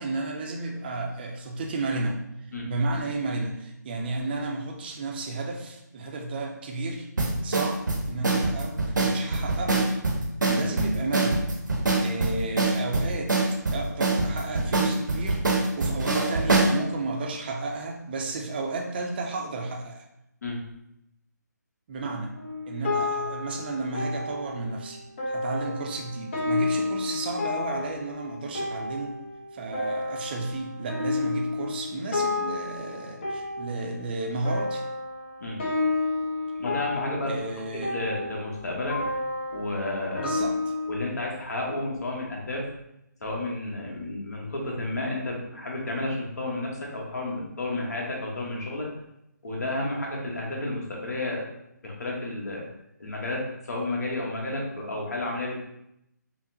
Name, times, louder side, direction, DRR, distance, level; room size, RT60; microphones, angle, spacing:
voice 1, 0.0-2.2 2.6-7.1 7.4-9.9 10.5-11.4 12.0-13.3 13.7-15.4 15.8-20.1 21.9-22.3 22.7-25.0 25.3-29.2 29.5-34.8 37.3-37.9 40.2-40.6, right 2 dB, 30° right, 2 dB, 0.5 m, -32 dB
sound 1, 7.2-16.8, right 2 dB, 80° right, 0.8 m, -24 dB
sound 2, 22.3-41.0, left 3 dB, 40° left, 0.7 m, -31 dB
voice 2, 36.6-37.4 37.7-39.0 39.5-40.4 40.9-42.7 43.2-48.9 49.4-51.5 51.8-52.6 53.0-55.6, left 2 dB, 60° left, -2 dB, 1.1 m, -31 dB
5.5 x 2.1 x 2.6 m, 0.82 s
figure-of-eight pair, 150°, 10 cm